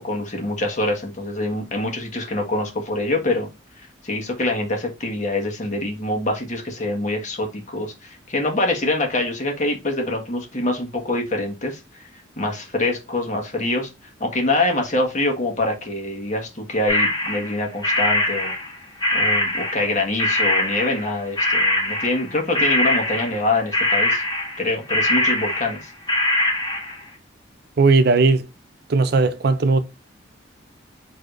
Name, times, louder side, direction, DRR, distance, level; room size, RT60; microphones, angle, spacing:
voice 1, 0.0-3.5 3.8-12.0 12.4-13.9 14.2-18.5 19.1-24.2 24.6-25.8, left 2 dB, 40° left, 1.5 m, -25 dB
sound 1, 16.9-19.9 20.2-21.1 21.4-22.3 22.5-27.0, left 1 dB, 20° left, 1.3 m, -22 dB
voice 2, 27.8-28.4 28.9-29.8, right 3 dB, 55° right, 0.5 m, -17 dB
4.8 x 3.9 x 2.5 m
head